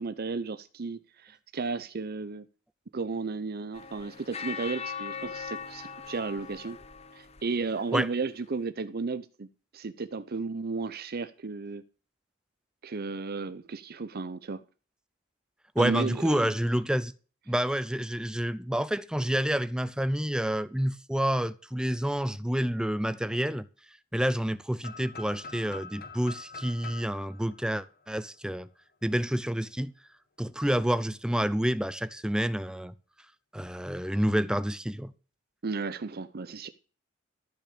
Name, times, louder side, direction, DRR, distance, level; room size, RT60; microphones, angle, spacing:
voice 1, 0.0-2.5 2.9-6.8 7.1-11.8 12.8-14.6 15.8-16.5 35.6-36.7, right 4 dB, 50° right, 0.7 m, -34 dB
sound 1, 3.7-8.0, left 6 dB, 30° left, 1.1 m, -40 dB
voice 2, 15.8-17.1 17.5-23.7 24.1-28.7 29.0-29.9 30.4-32.9 33.5-35.1, equal, 5° right, 0.5 m, -28 dB
sound 2, 24.8-28.6, left 4 dB, 50° left, 1.5 m, -45 dB
14.0 x 5.8 x 8.6 m
head